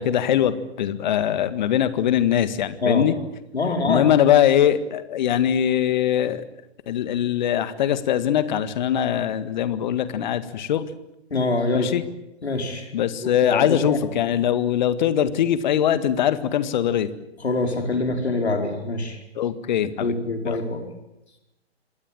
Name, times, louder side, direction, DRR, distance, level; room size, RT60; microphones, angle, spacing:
voice 1, 0.0-3.1 3.9-6.4 6.9-10.9 11.7-12.0 12.9-17.1 19.4-20.1 20.4-20.6, left 10 dB, 45° left, 13 dB, 1.9 m, -22 dB
voice 2, 3.5-4.1 11.3-11.9 12.4-12.9 13.2-14.0 17.4-19.2 20.0-20.8, left 3 dB, 75° left, 4 dB, 4.8 m, -24 dB
26.5 x 19.5 x 9.0 m, 0.91 s
figure-of-eight pair, 120°, 33 cm